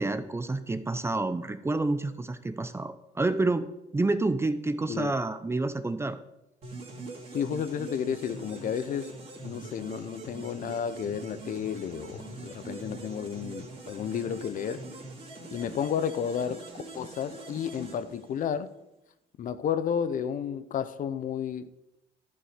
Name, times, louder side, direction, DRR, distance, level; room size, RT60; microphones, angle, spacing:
voice 1, 0.0-3.7 3.9-6.2, right 2 dB, 15° right, 12 dB, 0.7 m, -28 dB
sound 1, 6.6-18.7, right 2 dB, 40° right, 3.1 m, -43 dB
voice 2, 7.3-9.2 9.4-14.8 15.5-16.7 16.9-18.7 19.4-21.7, left 8 dB, 50° left, 13 dB, 0.7 m, -32 dB
11.0 x 5.5 x 6.6 m, 0.89 s
cardioid pair, 110°, 17 cm